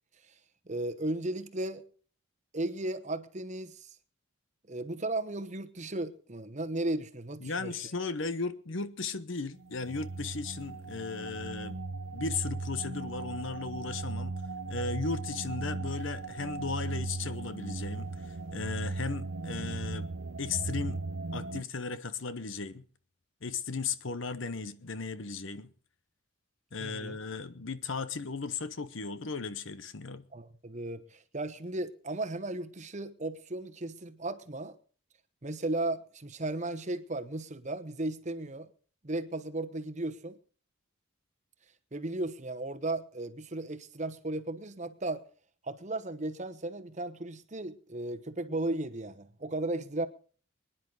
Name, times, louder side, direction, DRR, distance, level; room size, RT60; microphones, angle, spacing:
voice 1, 0.7-1.8 2.5-3.9 4.7-7.7 26.8-27.2 30.3-34.8 35.4-38.7 39.0-40.4 41.9-45.2 45.6-50.1, right 2 dB, 35° right, 1.0 m, -35 dB
voice 2, 7.4-11.8 12.1-14.3 14.7-20.1 20.4-21.0 21.3-22.8 23.4-25.7 26.7-30.2, left 4 dB, 60° left, 0.9 m, -36 dB
sound 1, 9.6-21.6, right 3 dB, 80° right, 0.8 m, -37 dB
24.0 x 10.5 x 3.9 m
head